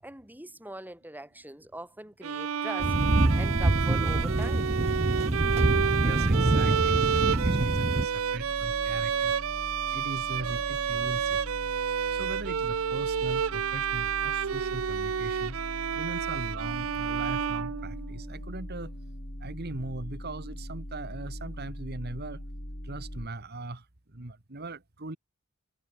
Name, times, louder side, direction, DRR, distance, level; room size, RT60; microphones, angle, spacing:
voice 1, 0.0-4.8, right 1 dB, 10° right, 6.8 m, -42 dB
Bowed string instrument, 2.2-18.3, right 7 dB, 80° right, 0.5 m, -30 dB
sound 1, 2.8-8.1, right 2 dB, 30° right, 0.8 m, -26 dB
voice 2, 6.0-9.3 9.9-11.4 12.1-15.6 16.0-18.9 19.4-22.4 22.8-23.8 24.1-25.2, right 2 dB, 50° right, 2.0 m, -39 dB
sound 2, 6.8-23.3, equal, 40° left, 6.1 m, -41 dB
head